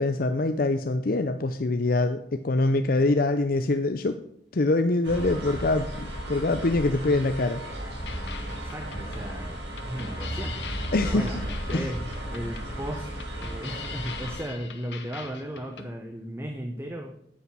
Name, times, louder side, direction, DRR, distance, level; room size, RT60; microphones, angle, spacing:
voice 1, 0.0-4.2 4.5-7.6 10.9-11.3 11.7-11.9, left 2 dB, 50° left, 8 dB, 0.6 m, -24 dB
sound 1, 5.0-14.4, right 1 dB, 80° right, 4.5 m, -35 dB
sound 2, 8.1-15.9, left 6 dB, 70° left, 1.3 m, -42 dB
voice 2, 8.5-10.7 11.0-13.1 13.4-17.2, equal, 15° right, 4 dB, 1.0 m, -36 dB
9.4 x 8.6 x 6.2 m, 0.69 s
head